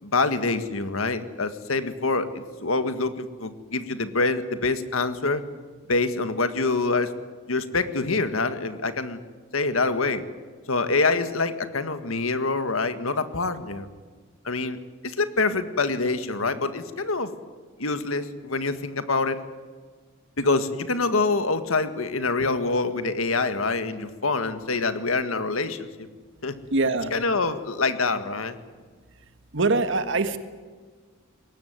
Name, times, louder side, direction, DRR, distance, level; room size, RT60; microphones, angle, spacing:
voice 1, 0.0-5.4 5.9-7.1 7.5-9.2 9.5-10.2 10.7-13.9 14.4-14.8 15.0-17.3 17.8-19.4 20.4-26.1 26.4-26.6 27.1-28.6, left 3 dB, 80° left, 10 dB, 1.8 m, -25 dB
voice 2, 26.7-27.1 29.5-30.4, right 3 dB, 60° right, 10 dB, 1.7 m, -23 dB
21.5 x 19.0 x 9.6 m, 1.5 s
head